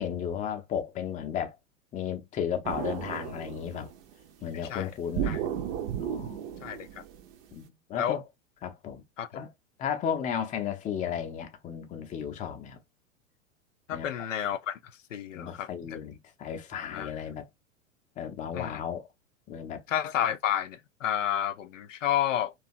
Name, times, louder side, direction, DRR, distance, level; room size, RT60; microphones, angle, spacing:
voice 1, 0.0-1.6 1.9-3.9 4.4-5.3 6.0-6.5 7.5-8.2 8.6-9.0 9.3-9.5 9.8-12.8 13.9-14.3 15.3-17.5 18.2-19.1 19.5-19.8, left 8 dB, 20° left, 0.5 m, -34 dB
sound 1, 2.6-4.1 5.1-7.6, right 9 dB, 50° right, 0.6 m, -34 dB
voice 2, 6.6-7.0 7.9-8.2 9.2-9.4 13.9-14.8 15.1-16.0 16.9-17.1 18.5-18.8 19.9-22.5, left 10 dB, 80° left, 0.5 m, -30 dB
2.8 x 2.3 x 2.5 m
figure-of-eight pair, 95°, 38 cm